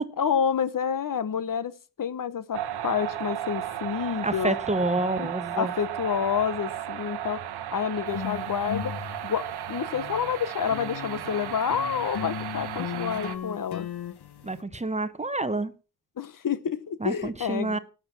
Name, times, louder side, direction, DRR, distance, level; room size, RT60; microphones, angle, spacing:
voice 1, 0.2-1.7 2.0-4.6 5.2-7.4 7.7-9.4 9.7-13.9 16.2-17.8, left 7 dB, 55° left, 16 dB, 1.0 m, -29 dB
sound 1, 2.5-13.4, right 11 dB, 85° right, 1.0 m, -35 dB
voice 2, 4.2-5.7 14.4-15.7 17.0-17.8, right 2 dB, 20° right, 13 dB, 0.9 m, -28 dB
sound 2, 8.1-10.3 10.7-14.6, left 8 dB, 85° left, 1.4 m, -37 dB
12.5 x 7.6 x 6.0 m, 0.33 s
wide cardioid pair, 115°, 38 cm